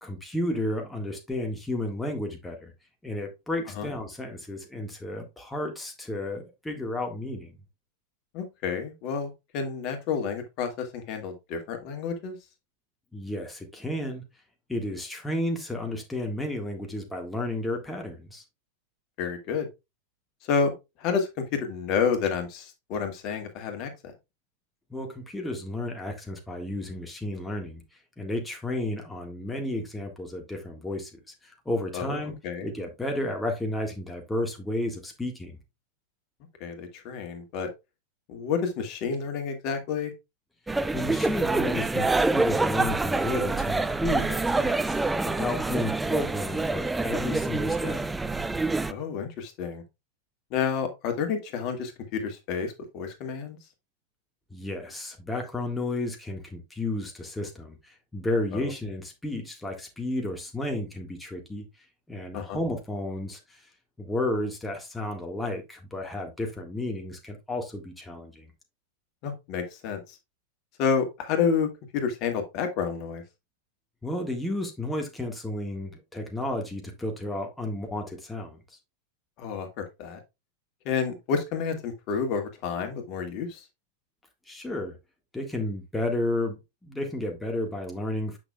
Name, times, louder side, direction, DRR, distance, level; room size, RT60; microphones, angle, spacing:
voice 1, 0.0-2.7 3.0-7.5 13.1-14.2 14.7-18.4 24.9-27.8 28.2-32.3 32.6-35.6 40.9-48.0 54.5-63.7 64.0-68.5 74.0-78.8 84.5-84.9 85.3-88.4, left 1 dB, 5° left, 1.7 m, -32 dB
voice 2, 8.3-12.4 19.2-19.7 20.4-20.7 21.0-24.1 31.9-32.2 32.4-32.7 36.6-37.7 38.3-40.1 48.9-49.8 50.5-53.6 58.5-58.7 62.3-62.6 69.2-70.2 70.8-73.2 79.4-80.2 80.9-83.6, left 6 dB, 40° left, 2.0 m, -30 dB
sound 1, 40.7-48.9, right 3 dB, 10° right, 0.5 m, -26 dB
8.9 x 6.1 x 2.3 m
figure-of-eight pair, 90°, 0 cm